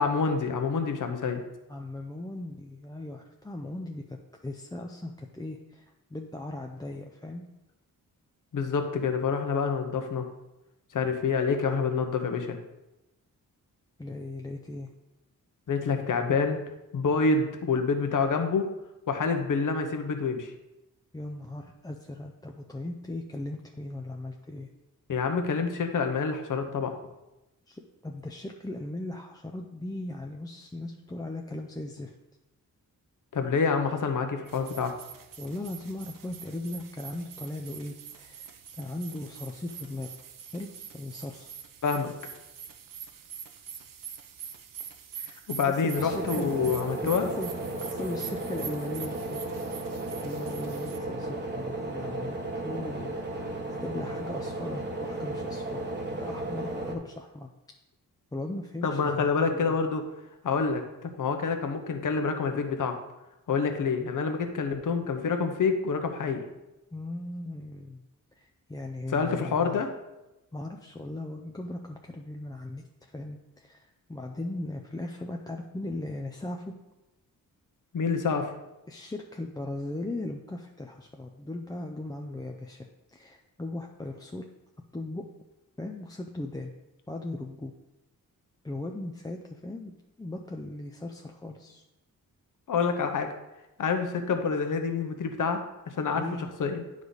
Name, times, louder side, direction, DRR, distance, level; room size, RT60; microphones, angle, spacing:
voice 1, 0.0-1.4 8.5-10.3 10.9-12.6 15.7-16.6 16.9-18.7 19.1-20.5 25.1-26.9 33.3-34.9 41.8-42.1 45.5-47.3 58.8-60.0 60.4-62.9 63.5-66.5 69.1-69.9 77.9-78.5 92.7-93.3 93.8-95.6 96.0-96.2 96.6-96.8, left 5 dB, 60° left, 6 dB, 0.9 m, -27 dB
voice 2, 1.7-4.2 4.4-5.9 6.1-7.5 14.0-14.9 21.1-24.7 27.7-32.1 35.4-40.1 40.5-41.5 45.7-46.7 47.2-47.6 47.9-49.4 50.2-55.9 56.1-57.5 58.3-59.8 66.9-68.0 68.3-69.8 70.5-76.7 78.9-84.5 84.9-85.3 85.8-86.7 87.1-87.7 88.6-91.8 96.1-96.5, left 2 dB, 10° left, 1 dB, 0.5 m, -38 dB
sound 1, 34.5-51.0, right 8 dB, 65° right, 0.7 m, -44 dB
sound 2, 46.0-57.0, right 2 dB, 30° right, 1.0 m, -34 dB
9.5 x 4.9 x 4.0 m, 0.96 s
wide cardioid pair, 125°, 35 cm